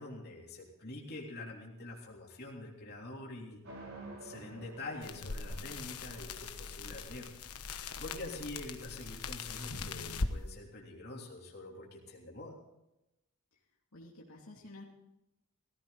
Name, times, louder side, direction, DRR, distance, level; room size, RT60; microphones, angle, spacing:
voice 1, 0.0-3.7 4.2-12.6, left 2 dB, 45° left, -2 dB, 3.3 m, -46 dB
sound 1, 3.6-9.7, right 2 dB, 70° right, 5.2 m, -53 dB
sound 2, 5.0-10.3, left 3 dB, 90° left, 1.2 m, -40 dB
voice 2, 13.9-14.9, left 2 dB, 75° left, -2 dB, 2.8 m, -51 dB
17.5 x 15.5 x 4.1 m, 0.91 s
head